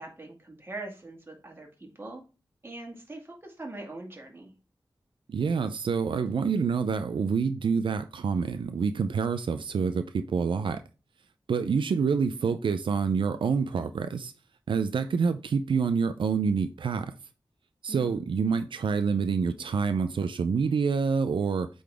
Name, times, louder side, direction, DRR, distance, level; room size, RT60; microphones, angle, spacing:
voice 1, 0.0-2.2 2.6-4.5 17.9-18.2, right 2 dB, 25° right, 2.1 m, -42 dB
voice 2, 5.3-10.8 11.5-14.3 14.7-17.1 17.8-21.7, right 5 dB, 90° right, 0.4 m, -27 dB
8.4 x 3.9 x 3.4 m
wide cardioid pair, 110°, 8 cm